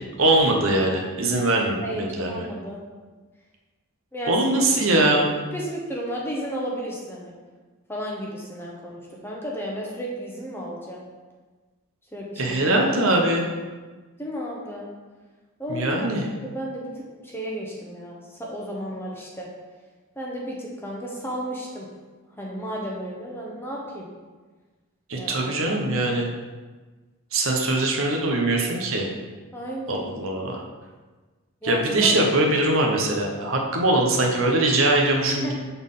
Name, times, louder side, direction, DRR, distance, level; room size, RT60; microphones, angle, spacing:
voice 1, 0.2-2.4 4.3-5.3 12.4-13.5 15.7-16.2 25.1-26.3 27.3-29.1 29.9-30.6 31.6-35.5, right 2 dB, 65° right, 0 dB, 0.9 m, -22 dB
voice 2, 1.8-2.8 4.1-4.5 5.5-7.3 7.9-11.0 12.1-12.8 14.2-14.9 15.6-16.1 16.4-19.5 20.2-21.9 22.4-24.1 25.2-25.6 29.5-30.1 31.6-32.2 35.4-35.5, equal, 10° left, -3 dB, 0.8 m, -33 dB
6.9 x 4.1 x 3.7 m, 1.3 s
head